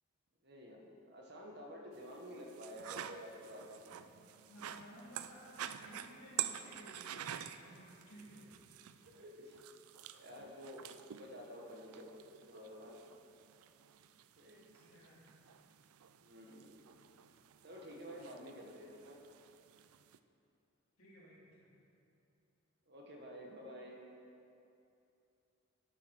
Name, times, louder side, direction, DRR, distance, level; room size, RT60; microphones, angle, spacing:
voice 1, 0.4-3.8 9.0-9.6 10.1-13.0 14.4-14.7 16.2-16.8 17.6-19.2 22.9-24.0, equal, 50° right, 0 dB, 1.4 m, -51 dB
sound 1, 1.9-20.2, right 11 dB, 80° right, 0.4 m, -49 dB
voice 2, 4.5-8.5 14.7-15.4 21.0-21.7, equal, 70° left, -5 dB, 2.9 m, -56 dB
9.7 x 7.5 x 6.4 m, 2.7 s
head